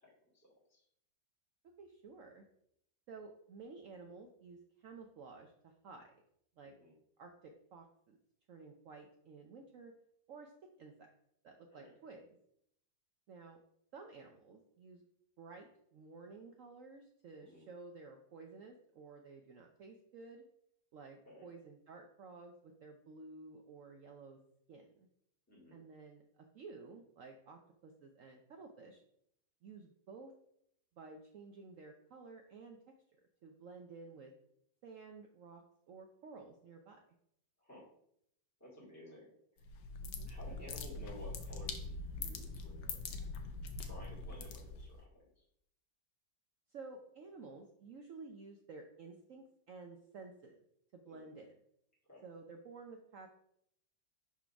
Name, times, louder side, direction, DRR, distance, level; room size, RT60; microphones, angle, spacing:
voice 1, 0.0-0.8 6.6-6.9 11.7-11.9 17.4-17.7 21.2-21.5 25.5-25.8 37.6-37.8 38.6-39.3 40.3-43.0 43.8-45.4 51.0-51.3 52.1-52.2, left 1 dB, 10° left, -8 dB, 2.4 m, -55 dB
voice 2, 1.8-2.4 3.1-6.2 6.6-6.7 7.2-8.2 8.5-9.9 10.3-11.1 11.4-12.3 13.3-13.6 13.9-15.0 15.4-20.4 20.9-24.4 24.7-25.1 25.7-29.0 29.6-30.3 31.0-32.8 33.4-34.3 34.8-37.0 40.0-40.3 46.7-50.6 50.9-51.6 52.2-53.3, right 4 dB, 80° right, 3 dB, 0.7 m, -53 dB
sound 1, 39.6-45.0, left 3 dB, 80° left, 1.4 m, -43 dB
4.6 x 4.1 x 5.7 m, 0.73 s
omnidirectional pair, 2.1 m